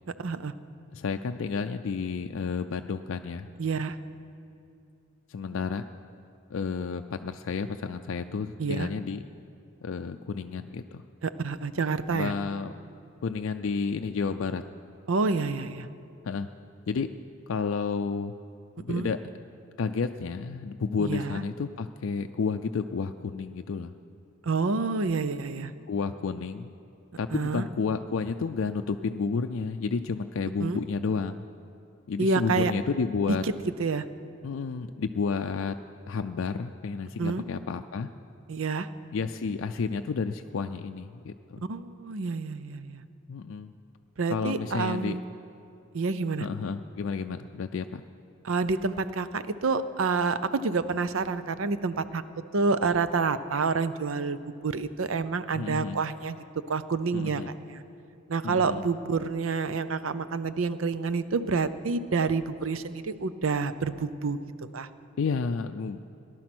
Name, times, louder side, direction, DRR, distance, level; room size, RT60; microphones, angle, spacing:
voice 1, 0.2-0.5 3.6-4.0 8.6-8.9 11.2-12.3 15.1-15.9 18.9-19.1 21.0-21.4 24.5-25.7 27.3-27.7 30.6-30.8 32.2-32.7 33.3-33.5 33.8-34.0 37.2-37.4 38.5-38.9 41.7-43.0 44.2-45.2 45.9-46.5 48.4-52.2 52.5-54.4 54.6-56.4 56.7-57.4 57.7-57.8 58.3-64.4 64.7-64.9, right 4 dB, 75° right, 13 dB, 0.6 m, -28 dB
voice 2, 0.9-3.5 5.3-5.8 6.5-9.2 9.8-11.0 12.1-12.7 13.2-14.6 16.2-16.5 16.9-17.1 17.5-18.3 18.8-19.2 19.8-23.9 25.9-26.7 27.2-31.4 32.1-33.4 34.4-35.8 36.1-38.1 39.1-41.6 43.3-43.7 44.3-45.2 46.4-48.0 55.5-56.0 57.1-57.5 58.4-58.8 65.2-66.1, left 5 dB, 70° left, 6 dB, 0.4 m, -31 dB
18.0 x 11.5 x 6.1 m, 2.6 s
head